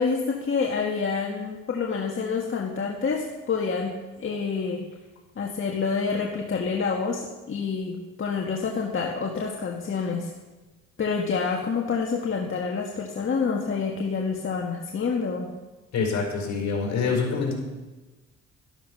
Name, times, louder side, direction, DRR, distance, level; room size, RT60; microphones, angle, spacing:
voice 1, 0.0-3.9 4.2-4.8 5.3-10.3 11.0-15.5, left 5 dB, 45° left, 0 dB, 1.6 m, -27 dB
voice 2, 15.9-17.5, left 5 dB, 65° left, 0 dB, 5.0 m, -25 dB
12.5 x 12.0 x 5.5 m, 1.2 s
cardioid pair, 90°, 30 cm